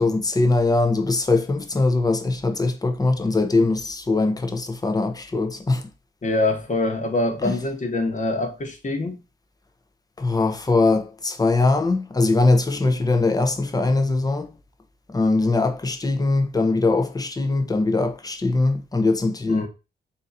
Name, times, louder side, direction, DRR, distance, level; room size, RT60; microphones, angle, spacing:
voice 1, 0.0-5.8 7.4-7.5 10.2-14.5 15.1-19.7, left 3 dB, 20° left, 0.7 m, -21 dB
voice 2, 6.2-9.2 19.5-19.7, left 2 dB, 40° left, 1.1 m, -24 dB
3.9 x 2.7 x 4.0 m
cardioid pair, 80°, 19 cm